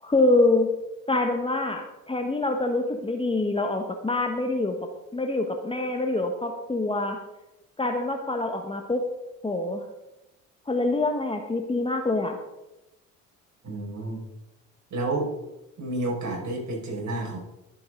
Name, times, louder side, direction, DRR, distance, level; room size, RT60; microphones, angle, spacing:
voice 1, 0.0-0.7 1.1-7.2 7.8-9.0 9.4-9.8 10.7-12.4, left 2 dB, 10° left, 4 dB, 1.4 m, -25 dB
voice 2, 13.6-14.2 14.9-15.3 15.8-17.4, right 2 dB, 40° right, -1 dB, 5.4 m, -30 dB
22.0 x 7.7 x 3.8 m, 0.96 s
figure-of-eight pair, 55°, 43 cm